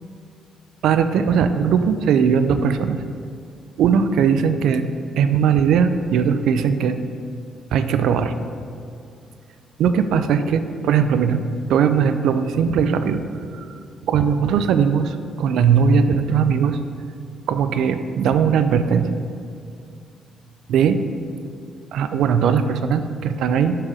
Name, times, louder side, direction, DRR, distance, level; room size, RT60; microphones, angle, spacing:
voice 1, 0.8-3.0 3.8-7.0 7.7-8.3 9.8-13.2 13.5-13.7 14.1-16.8 17.5-19.2 20.7-21.0 21.9-23.8, right 7 dB, 80° right, 10 dB, 0.4 m, -19 dB
5.9 x 4.8 x 6.2 m, 2.4 s
cardioid pair, 90°, 0 cm